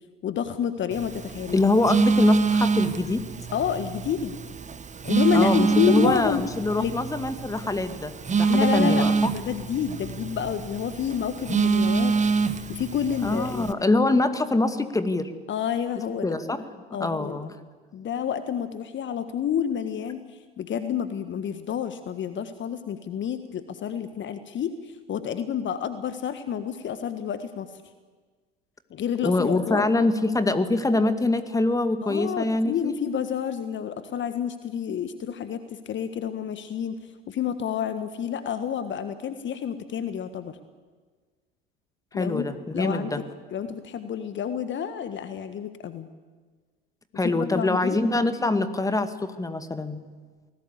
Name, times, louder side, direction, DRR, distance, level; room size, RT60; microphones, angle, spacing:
voice 1, 0.2-1.7 3.5-4.3 5.0-6.5 6.8-6.9 8.5-12.1 12.4-13.8 15.5-16.3 16.9-17.4 17.9-27.7 28.9-29.9 32.0-40.6 42.1-42.4 42.7-43.2 43.5-46.1 47.2-48.0, left 8 dB, 40° left, 10 dB, 1.6 m, -29 dB
Telephone, 0.9-13.7, right 5 dB, 25° right, 1.6 m, -26 dB
voice 2, 1.5-3.2 5.3-9.1 13.2-15.3 16.2-16.6 17.0-17.5 29.2-33.0 42.1-43.2 47.2-50.0, left 2 dB, 10° left, 10 dB, 2.2 m, -24 dB
29.0 x 19.5 x 8.4 m, 1.4 s
figure-of-eight pair, 65°, 30 cm